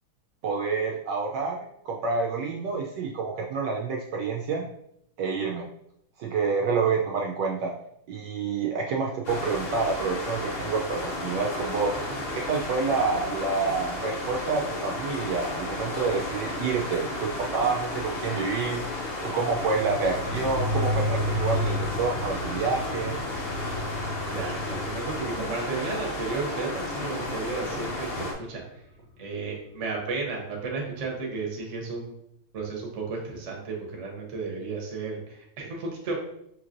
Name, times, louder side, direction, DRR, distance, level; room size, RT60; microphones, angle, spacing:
voice 1, 0.4-4.6 5.2-5.7 6.2-7.7 8.1-11.9 12.3-18.8 19.2-23.2, right 4 dB, 75° right, -1 dB, 1.0 m, -28 dB
sound 1, 9.2-28.3, left 2 dB, 65° left, 0.6 m, -33 dB
sound 2, 19.6-28.7 29.1-29.2, left 1 dB, 85° left, 1.6 m, -33 dB
voice 2, 24.2-28.6 29.2-32.2 32.5-36.1, right 4 dB, 45° right, -1 dB, 1.0 m, -33 dB
5.5 x 3.1 x 2.5 m, 0.75 s
omnidirectional pair, 2.3 m